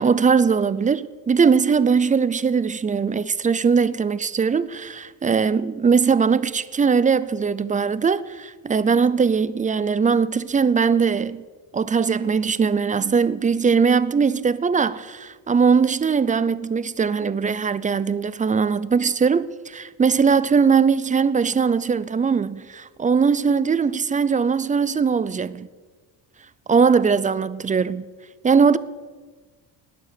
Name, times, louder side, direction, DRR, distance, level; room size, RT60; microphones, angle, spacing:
voice 1, 0.0-11.4 11.7-25.7 26.7-28.1 28.4-28.8, right 5 dB, 20° right, 0.4 m, -20 dB
18.0 x 10.0 x 6.7 m
cardioid pair, 135°, 43 cm